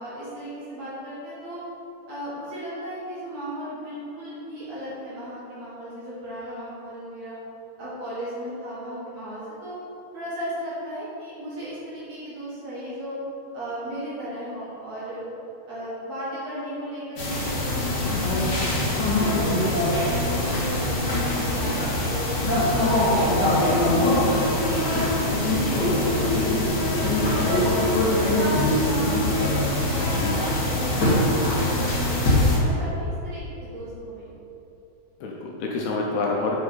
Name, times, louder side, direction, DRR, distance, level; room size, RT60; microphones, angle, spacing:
voice 1, 0.0-1.6 2.1-7.4 7.8-9.8 10.1-13.2 13.5-15.2 15.7-19.7 20.1-22.3 22.6-26.3 26.9-27.7 28.0-29.6 29.9-34.4, equal, 50° right, -9 dB, 2.4 m, -35 dB
sound 1, 17.2-32.6, left 1 dB, 55° left, 1.2 m, -22 dB
voice 2, 24.1-24.6 35.2-36.6, left 3 dB, 75° left, -1 dB, 2.5 m, -28 dB
7.9 x 6.0 x 5.6 m, 3.0 s
omnidirectional pair, 5.0 m